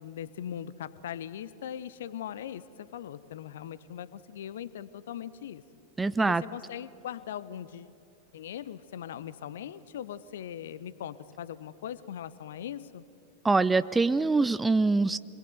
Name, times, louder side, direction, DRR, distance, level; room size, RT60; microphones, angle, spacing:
voice 1, 0.0-5.6 6.2-7.9 8.3-13.0, left 10 dB, 60° left, 17 dB, 0.9 m, -40 dB
voice 2, 6.0-6.4 13.4-15.2, right 3 dB, 10° right, 16 dB, 0.5 m, -24 dB
25.5 x 21.5 x 9.4 m, 2.6 s
figure-of-eight pair, 90°, 0 cm